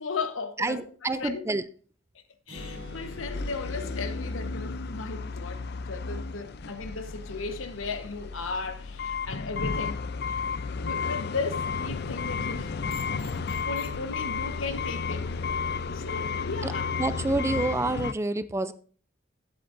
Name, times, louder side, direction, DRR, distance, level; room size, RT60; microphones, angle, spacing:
voice 1, 0.0-0.8 1.2-1.5 2.5-10.0 10.8-12.7 13.5-15.3 15.9-16.9, left 4 dB, 85° left, 1.2 m, -36 dB
voice 2, 0.6-1.6 16.6-16.7 17.0-18.7, right 2 dB, 15° right, 0.4 m, -28 dB
Acoustic guitar, 2.5-6.1, equal, 55° right, 3.2 m, -49 dB
sound 1, 2.6-18.1, left 5 dB, 55° left, 0.5 m, -33 dB
sound 2, 11.6-15.9, equal, 30° left, 2.1 m, -47 dB
15.0 x 7.8 x 2.6 m
head